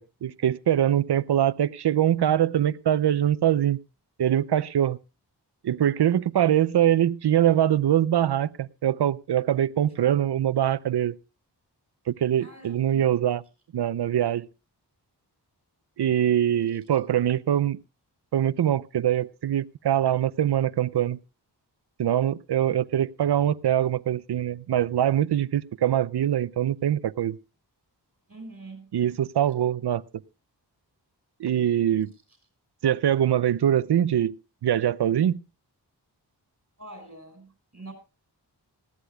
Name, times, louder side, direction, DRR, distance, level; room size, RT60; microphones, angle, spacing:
voice 1, 0.0-3.8 4.2-5.0 5.6-11.1 12.1-13.4 13.7-14.5 16.0-17.8 18.3-21.2 22.0-27.4 28.9-30.0 31.4-32.1 32.8-34.3 34.6-35.4, right 10 dB, 70° right, 0.6 m, -23 dB
voice 2, 12.4-13.2 28.3-28.9 36.8-37.9, right 2 dB, 35° right, 6.1 m, -44 dB
19.5 x 15.0 x 2.3 m
wide cardioid pair, 80°, 41 cm